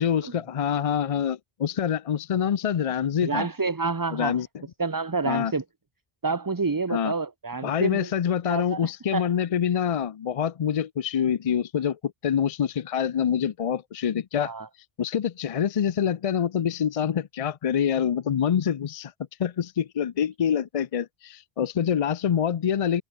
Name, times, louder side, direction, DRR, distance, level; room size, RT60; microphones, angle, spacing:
voice 1, 0.0-3.5 4.1-4.5 5.2-5.5 6.9-7.1 7.6-14.5 15.0-19.1 19.4-23.0, left 8 dB, 50° left, 0.4 m, -26 dB
voice 2, 3.2-4.4 4.8-5.6 6.2-8.1 8.4-9.3 14.4-14.7, right 4 dB, 25° right, 0.6 m, -28 dB
omnidirectional pair, 1.1 m